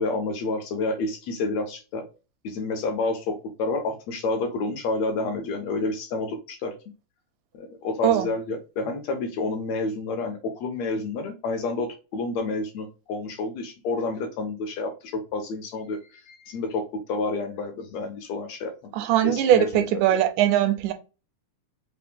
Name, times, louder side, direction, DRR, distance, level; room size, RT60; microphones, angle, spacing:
voice 1, 0.0-2.0 2.4-6.7 7.5-18.7 19.2-20.2, left 3 dB, 75° left, 1.7 m, -29 dB
voice 2, 18.9-20.9, right 11 dB, 85° right, 2.1 m, -21 dB
5.6 x 2.1 x 3.5 m
omnidirectional pair, 3.5 m